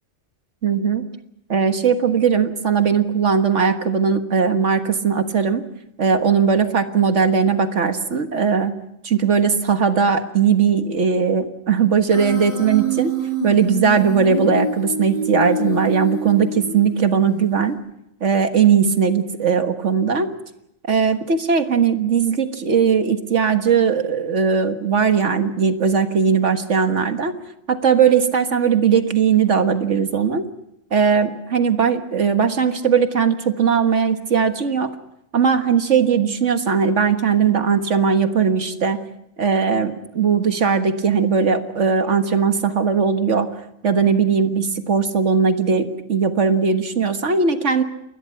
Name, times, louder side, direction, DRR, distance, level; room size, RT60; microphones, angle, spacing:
voice 1, 0.6-1.1 1.5-5.6 6.0-8.7 9.0-13.1 13.4-17.8 18.2-20.3 20.9-27.3 27.7-30.4 30.9-34.9 35.3-39.0 39.4-43.5 43.8-47.8, right 6 dB, 85° right, 7 dB, 1.9 m, -19 dB
Human voice, 12.1-17.1, right 2 dB, 25° left, 6.5 m, -26 dB
28.5 x 21.0 x 5.9 m, 0.83 s
omnidirectional pair, 1.2 m